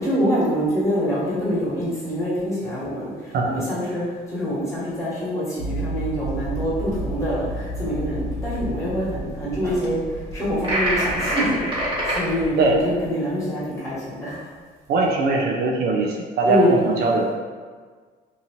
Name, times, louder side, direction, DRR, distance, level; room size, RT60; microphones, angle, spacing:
voice 1, 0.0-14.4 16.4-16.8, equal, 20° left, -9 dB, 1.3 m, -25 dB
voice 2, 3.3-3.7 12.6-12.8 14.9-17.3, right 3 dB, 70° right, -1 dB, 0.5 m, -21 dB
sound 1, 5.6-13.1, right 1 dB, 80° left, 0.5 m, -32 dB
sound 2, 10.6-12.2, right 1 dB, 30° right, 1.0 m, -24 dB
2.8 x 2.5 x 2.9 m, 1.5 s
cardioid pair, 110°, 17 cm